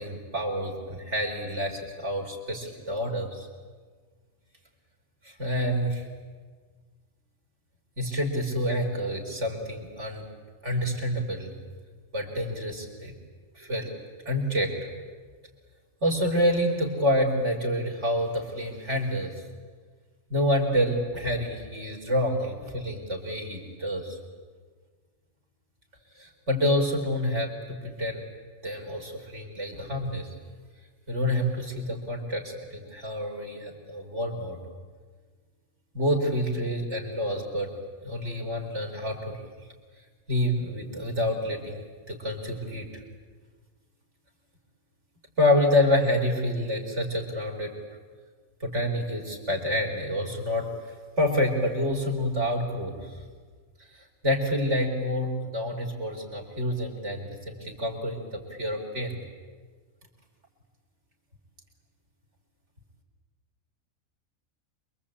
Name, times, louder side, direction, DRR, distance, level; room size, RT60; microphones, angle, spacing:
voice 1, 0.0-3.5 5.2-6.0 8.0-10.2 10.6-11.5 12.1-13.1 13.6-13.9 14.2-14.7 16.0-19.3 20.3-24.2 26.2-28.2 28.6-30.3 31.1-34.6 35.9-37.7 38.0-39.3 40.3-42.9 45.4-47.7 48.6-53.1 54.2-59.2, left 1 dB, 55° right, 1 dB, 4.7 m, -28 dB
28.0 x 23.5 x 8.6 m, 1.5 s
omnidirectional pair, 1.4 m